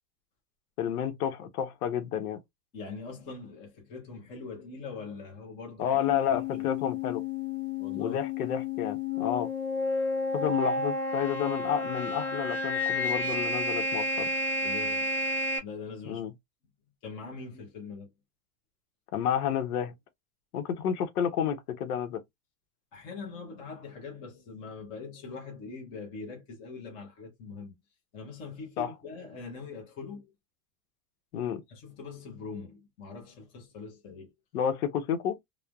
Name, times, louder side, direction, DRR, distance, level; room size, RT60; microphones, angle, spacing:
voice 1, 0.8-2.4 5.8-7.2 8.0-9.5 10.3-14.3 16.1-16.3 19.1-19.9 20.5-22.2 28.8-28.9 31.3-31.6 34.5-35.4, left 9 dB, 85° left, 0.9 m, -30 dB
voice 2, 2.7-5.9 6.3-6.7 7.8-8.2 14.6-15.1 15.6-16.2 17.0-18.1 22.9-27.7 28.1-30.3 31.7-34.3, left 4 dB, 15° left, 0.4 m, -42 dB
sound 1, 5.9-15.6, left 2 dB, 60° left, 1.4 m, -31 dB
3.1 x 2.1 x 2.3 m
supercardioid pair, 175°, 44 cm